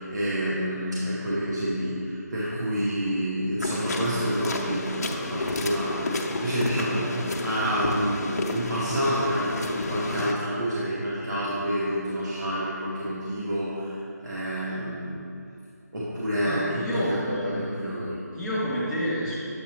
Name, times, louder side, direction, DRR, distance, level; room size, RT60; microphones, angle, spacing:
voice 1, 0.0-15.2 15.9-18.2, equal, 80° right, -9 dB, 1.4 m, -28 dB
sound 1, 3.6-10.3, left 2 dB, 60° left, 0.7 m, -31 dB
voice 2, 16.4-17.8 18.3-19.4, equal, ahead, -13 dB, 0.4 m, -29 dB
7.8 x 5.3 x 2.9 m, 2.6 s
figure-of-eight pair, 165°, 9 cm